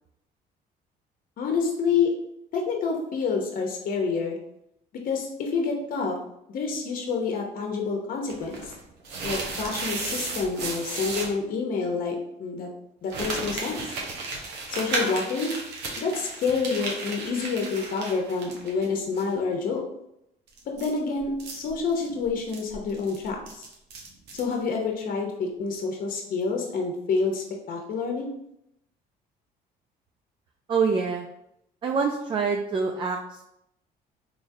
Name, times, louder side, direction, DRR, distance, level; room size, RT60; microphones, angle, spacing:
voice 1, 1.4-2.1 2.5-4.4 5.0-6.2 6.5-8.7 9.2-12.7 13.0-13.9 14.7-15.5 16.0-19.9 20.8-23.6 24.3-28.3, left 4 dB, 55° left, 1 dB, 0.8 m, -28 dB
sound 1, 8.3-11.3 13.1-18.9 19.1-19.2 20.5-24.5, right 3 dB, 85° right, 0.9 m, -34 dB
voice 2, 30.7-31.3 31.8-33.4, right 5 dB, 30° right, 2 dB, 0.4 m, -25 dB
3.8 x 3.1 x 2.6 m, 0.79 s
cardioid pair, 110°, 17 cm